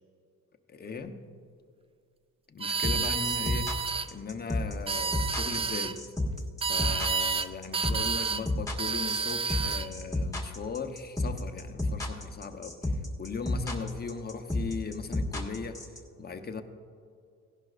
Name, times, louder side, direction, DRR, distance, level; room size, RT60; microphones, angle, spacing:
voice 1, 0.7-1.2 2.5-3.8 4.1-6.0 6.7-12.9 13.2-15.8 16.2-16.6, left 4 dB, 30° left, 7 dB, 0.9 m, -38 dB
sound 1, 2.6-4.1 4.7-5.9 6.6-7.5 7.7-8.4 8.8-9.9, right 5 dB, 20° right, 0.3 m, -30 dB
sound 2, 2.8-16.0, left 1 dB, 10° left, 1.6 m, -31 dB
16.5 x 11.5 x 2.5 m, 2.3 s
cardioid pair, 90°, 30 cm